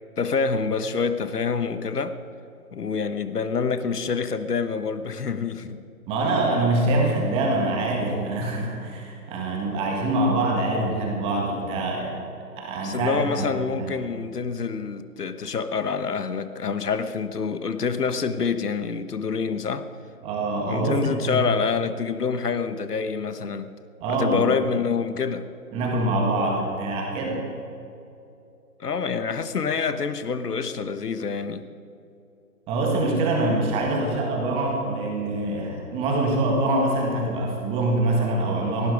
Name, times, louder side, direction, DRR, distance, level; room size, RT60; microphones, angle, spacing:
voice 1, 0.2-2.2 2.7-5.8 12.8-19.9 20.6-23.8 24.1-25.5 28.8-31.6, left 5 dB, 75° left, 11 dB, 1.3 m, -27 dB
voice 2, 6.1-12.2 12.6-13.9 20.2-21.4 24.0-24.5 25.7-27.4 32.7-38.9, right 2 dB, 10° right, 0 dB, 1.8 m, -24 dB
18.0 x 15.5 x 5.0 m, 2.7 s
hypercardioid pair, 155°, 47 cm